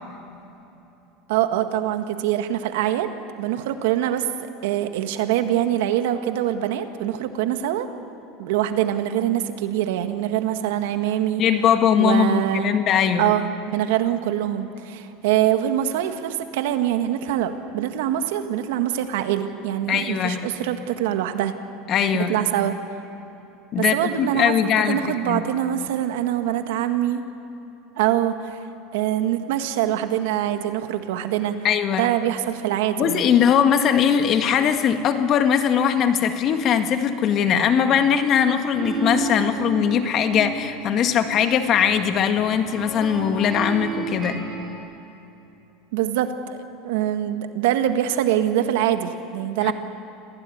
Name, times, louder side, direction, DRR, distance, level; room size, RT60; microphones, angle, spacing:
voice 1, 1.3-7.9 8.4-11.4 12.0-12.8 13.2-21.5 22.3-22.8 23.8-24.6 24.9-27.2 28.0-28.6 28.9-31.6 31.9-33.3 45.9-46.6 46.8-49.7, right 11 dB, 80° right, 8 dB, 1.7 m, -24 dB
voice 2, 11.4-13.3 19.9-20.5 21.9-22.4 23.7-25.4 31.6-32.1 33.0-44.4 49.6-49.7, left 8 dB, 40° left, 7 dB, 1.9 m, -20 dB
sound 1, 38.7-44.8, right 2 dB, 15° right, 6.0 m, -31 dB
26.5 x 17.0 x 9.6 m, 3.0 s
supercardioid pair, 135°, 0 cm